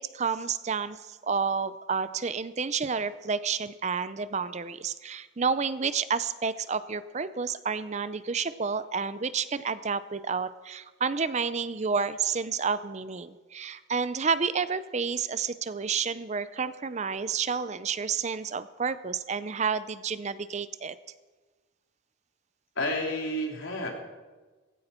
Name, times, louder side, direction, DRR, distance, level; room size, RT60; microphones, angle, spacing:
voice 1, 0.0-20.9, right 5 dB, 35° right, 14 dB, 0.5 m, -30 dB
voice 2, 22.8-23.9, left 1 dB, 75° left, 0 dB, 3.4 m, -30 dB
17.0 x 15.5 x 4.4 m, 1.3 s
head